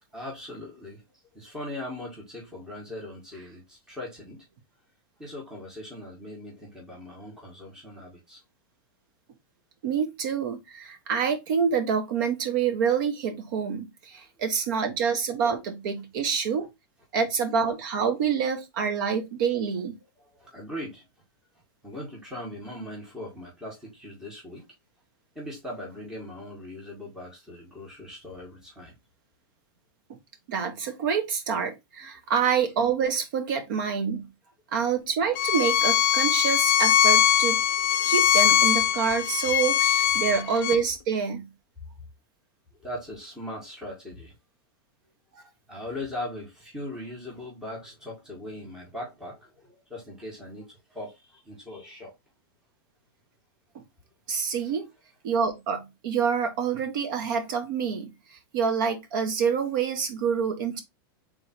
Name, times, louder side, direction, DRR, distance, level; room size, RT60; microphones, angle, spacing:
voice 1, 0.1-4.5 5.2-8.4 14.1-14.2 20.2-21.1 21.8-24.6 25.3-28.9 42.7-44.3 45.7-52.1 54.6-54.7, left 1 dB, 5° right, 1.6 m, -40 dB
voice 2, 9.8-16.7 17.1-19.9 30.1-30.2 30.5-34.3 34.7-37.6 38.0-41.5 45.3-45.5 53.7-53.8 54.3-54.9 55.2-60.8, right 6 dB, 60° right, 1.2 m, -27 dB
Bowed string instrument, 35.4-40.8, left 11 dB, 55° left, 0.5 m, -21 dB
3.7 x 3.1 x 4.3 m
supercardioid pair, 155°, 12 cm